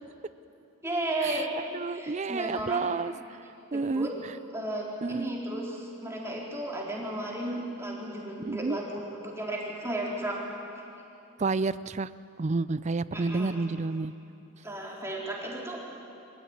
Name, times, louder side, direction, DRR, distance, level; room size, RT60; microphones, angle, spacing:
voice 1, 0.8-1.6 1.9-2.9 3.7-4.1 4.5-10.4 13.1-13.5 14.6-15.8, right 1 dB, 15° right, -3 dB, 3.8 m, -34 dB
voice 2, 1.7-3.1 3.7-4.1 5.0-5.3 8.4-8.8 11.4-12.1 12.4-14.1, right 3 dB, 35° right, 17 dB, 0.4 m, -29 dB
25.0 x 15.5 x 9.6 m, 2.8 s
head